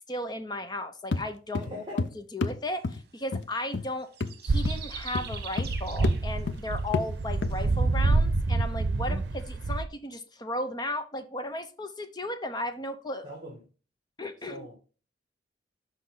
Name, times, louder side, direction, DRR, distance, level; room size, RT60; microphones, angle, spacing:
voice 1, 0.1-2.0 2.3-4.1 4.4-13.3 14.2-14.7, left 1 dB, 25° left, 0.7 m, -35 dB
sound 1, 1.1-1.3 1.5-2.1 2.4-2.6 2.8-3.0 3.3-3.5 3.7-3.9 4.2-4.4 4.6-4.8 5.1-5.8 6.0-6.2 6.5-6.6 6.9-7.1 7.4-7.5, left 3 dB, 80° left, 0.6 m, -29 dB
voice 2, 1.5-2.0 8.9-9.2 13.2-13.6 14.5-14.7, right 1 dB, 25° right, 2.1 m, -42 dB
sound 2, 4.0-7.7, right 8 dB, 60° right, 1.1 m, -43 dB
sound 3, 4.5-9.9, right 3 dB, 80° right, 0.6 m, -27 dB
6.3 x 5.7 x 3.8 m
head